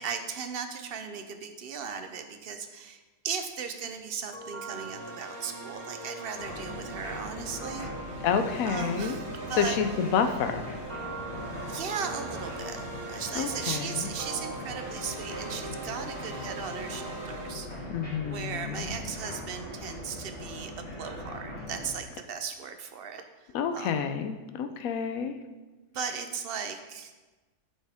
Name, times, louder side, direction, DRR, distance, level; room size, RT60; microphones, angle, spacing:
voice 1, 0.0-7.9 8.6-10.0 11.7-17.7 18.2-23.2 23.7-24.0 25.9-27.1, right 6 dB, 55° right, 7 dB, 0.7 m, -37 dB
sound 1, 4.3-17.5, right 2 dB, 85° right, 1.9 m, -41 dB
sound 2, 6.4-21.9, left 1 dB, 50° left, 2.7 m, -41 dB
voice 2, 8.2-9.2 9.6-10.7 13.3-14.1 17.9-18.9 23.5-25.4, left 6 dB, 85° left, 8 dB, 1.0 m, -29 dB
8.8 x 5.6 x 3.5 m, 1.2 s
omnidirectional pair, 1.4 m